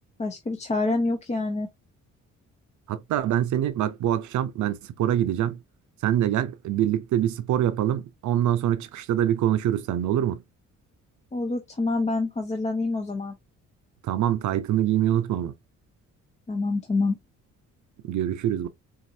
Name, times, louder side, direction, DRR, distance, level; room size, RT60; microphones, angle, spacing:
voice 1, 0.2-1.7 11.3-13.4 16.5-17.2, left 3 dB, 25° left, 0.6 m, -26 dB
voice 2, 2.9-5.6 6.0-10.4 14.0-15.5 18.0-18.7, right 11 dB, 75° right, 0.6 m, -25 dB
4.0 x 2.5 x 2.6 m
cardioid pair, 90°, 30 cm